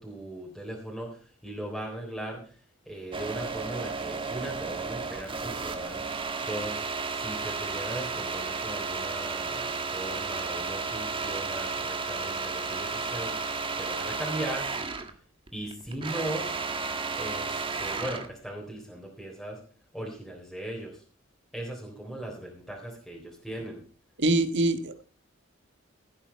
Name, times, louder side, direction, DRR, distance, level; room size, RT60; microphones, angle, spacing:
voice 1, 0.0-2.4 2.9-6.0 6.5-6.8 7.1-13.3 13.8-14.7 15.5-16.5 17.2-19.6 19.9-21.0 21.5-23.8, right 1 dB, ahead, -2 dB, 3.8 m, -38 dB
sound 1, 3.1-15.1 15.5-18.3, right 4 dB, 25° right, 1.5 m, -33 dB
voice 2, 24.2-25.1, right 2 dB, 60° right, 10 dB, 1.4 m, -24 dB
16.0 x 9.2 x 4.5 m, 0.41 s
head